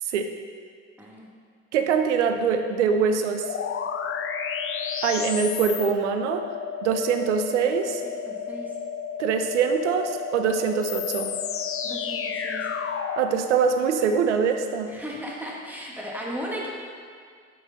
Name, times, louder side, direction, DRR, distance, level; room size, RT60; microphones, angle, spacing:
voice 1, 1.0-1.3 8.2-8.7 11.8-12.6 14.9-16.7, equal, 5° right, -3 dB, 1.5 m, -35 dB
voice 2, 1.7-3.5 5.0-6.5 6.8-8.0 9.2-11.3 13.2-14.9, right 6 dB, 85° right, 7 dB, 0.5 m, -23 dB
sound 1, 3.4-13.3, left 7 dB, 40° left, 0.5 m, -31 dB
7.7 x 3.8 x 4.0 m, 2.1 s
hypercardioid pair, 50°, 34 cm